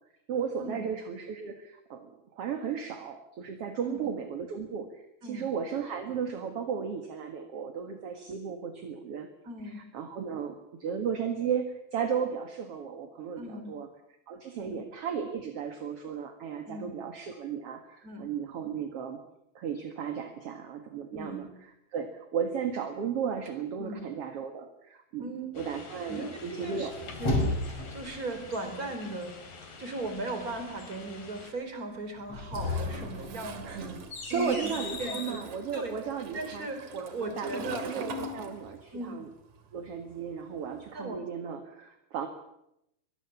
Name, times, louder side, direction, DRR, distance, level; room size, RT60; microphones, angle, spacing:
voice 1, 0.3-9.3 9.7-13.9 14.3-19.2 19.6-26.9 33.6-34.0 34.3-36.7 36.9-39.3 39.7-42.3, right 7 dB, 50° right, 6 dB, 2.3 m, -35 dB
voice 2, 5.2-5.5 9.4-9.8 13.4-13.7 14.6-14.8 16.7-16.9 18.0-18.3 21.1-21.5 23.8-24.0 25.2-25.5 26.1-26.9 27.2-29.3 29.8-33.9 34.3-34.7 35.0-35.4 35.7-35.9 36.3-36.8 37.1-37.8 38.9-39.2 40.9-41.2, right 2 dB, 25° right, 7 dB, 4.3 m, -38 dB
sound 1, 25.5-31.5, left 4 dB, 65° left, 5.4 m, -47 dB
sound 2, 26.6-28.1 32.2-35.4, left 2 dB, 40° left, 6.7 m, -33 dB
Toilet flush, 32.6-39.1 39.3-40.9, right 2 dB, 65° right, 3.6 m, -43 dB
24.0 x 21.0 x 7.2 m, 0.81 s
omnidirectional pair, 4.1 m